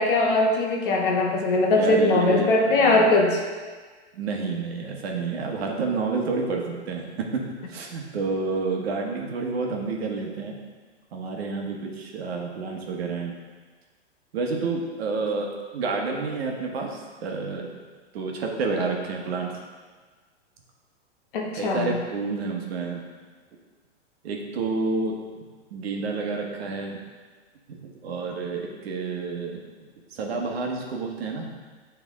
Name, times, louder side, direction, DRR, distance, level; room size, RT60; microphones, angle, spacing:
voice 1, 0.0-3.4 21.3-22.0, left 2 dB, 50° left, 0 dB, 1.0 m, -21 dB
voice 2, 1.7-3.1 4.1-7.4 7.7-10.6 11.1-13.3 14.3-17.7 18.1-19.5 21.5-23.0 24.2-25.4 25.7-27.0 27.7-29.6 30.1-31.5, right 4 dB, 60° right, 1 dB, 1.1 m, -29 dB
8.1 x 3.4 x 3.6 m, 1.4 s
hypercardioid pair, 160°, 34 cm